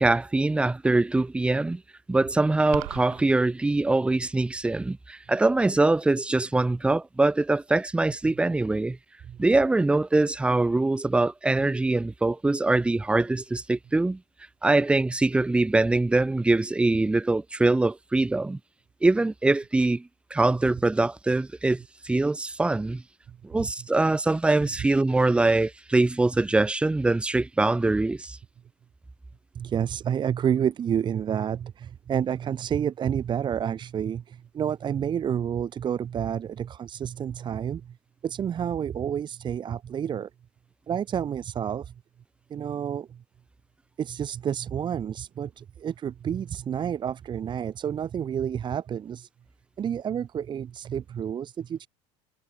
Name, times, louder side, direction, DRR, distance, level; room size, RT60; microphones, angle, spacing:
voice 1, 0.0-1.8 2.1-9.0 9.4-14.2 14.6-18.6 19.0-23.0 23.4-28.4, right 2 dB, 10° right, 0.6 m, -23 dB
sound 1, 2.7-3.2, right 32 dB, 70° right, 2.3 m, -36 dB
voice 2, 23.3-23.7 29.5-37.9 38.2-40.3 40.9-41.9 42.5-43.2 44.0-49.3 49.8-51.9, right 8 dB, 35° right, 1.6 m, -29 dB
supercardioid pair, 110°, 14 cm